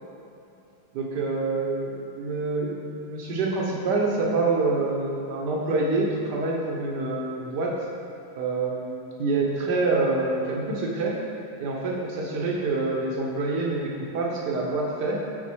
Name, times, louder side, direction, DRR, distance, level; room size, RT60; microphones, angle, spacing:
voice 1, 0.9-7.7 8.3-11.2 11.6-15.2, right 3 dB, 60° right, -2 dB, 1.5 m, -26 dB
6.4 x 3.9 x 6.2 m, 2.7 s
omnidirectional pair, 2.1 m